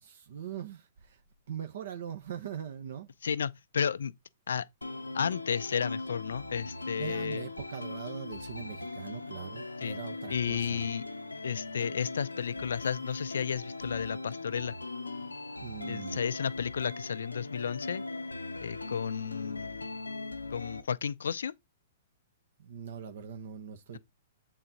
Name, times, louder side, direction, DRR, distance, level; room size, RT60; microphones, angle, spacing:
voice 1, 0.0-1.2 1.5-3.1 6.8-10.8 15.6-16.2 22.6-24.0, right 8 dB, 60° right, 0.9 m, -41 dB
voice 2, 3.2-4.1 4.5-4.7 5.1-7.4 9.8-10.0 10.3-11.0 11.4-14.7 15.9-18.0 18.6-19.8 20.5-21.5, left 7 dB, 65° left, 0.5 m, -33 dB
sound 1, 4.8-20.8, left 3 dB, 85° left, 0.8 m, -40 dB
7.7 x 4.0 x 4.0 m
figure-of-eight pair, 110°, 0 cm